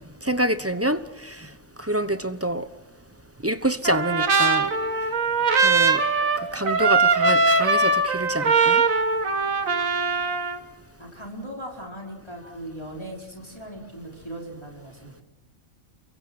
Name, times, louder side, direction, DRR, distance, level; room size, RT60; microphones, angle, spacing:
voice 1, 0.2-1.3 1.8-2.7 3.4-4.7 5.6-6.0 6.5-8.8, right 1 dB, 10° right, 0.9 m, -26 dB
Trumpet, 3.8-10.6, right 4 dB, 85° right, 1.9 m, -21 dB
voice 2, 11.0-15.2, right 1 dB, 20° left, 4.8 m, -38 dB
29.5 x 23.0 x 6.2 m
omnidirectional pair, 1.4 m